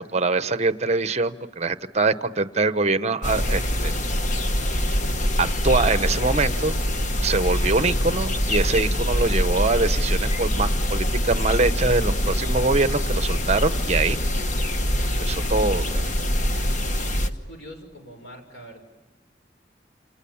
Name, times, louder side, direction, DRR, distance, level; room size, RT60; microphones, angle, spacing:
voice 1, 0.0-4.0 5.4-6.7 7.2-14.2 15.3-16.1, right 3 dB, 40° right, 12 dB, 0.9 m, -23 dB
sound 1, 3.2-17.3, equal, 45° left, 1.2 m, -24 dB
voice 2, 17.2-18.8, equal, 90° left, 5 dB, 6.6 m, -43 dB
29.5 x 28.5 x 7.1 m, 1.2 s
head